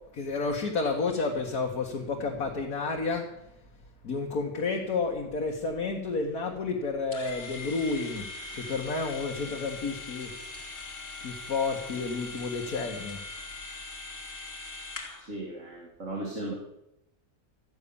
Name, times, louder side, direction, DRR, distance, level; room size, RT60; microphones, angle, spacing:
voice 1, 0.1-3.5 4.0-10.3 11.2-13.2, left 4 dB, 80° left, 0 dB, 2.1 m, -31 dB
sound 1, 7.1-15.3, left 3 dB, 60° left, 2.7 m, -41 dB
voice 2, 15.2-16.5, right 1 dB, 55° right, -2 dB, 2.6 m, -36 dB
14.0 x 10.0 x 7.1 m, 0.86 s
omnidirectional pair, 1.5 m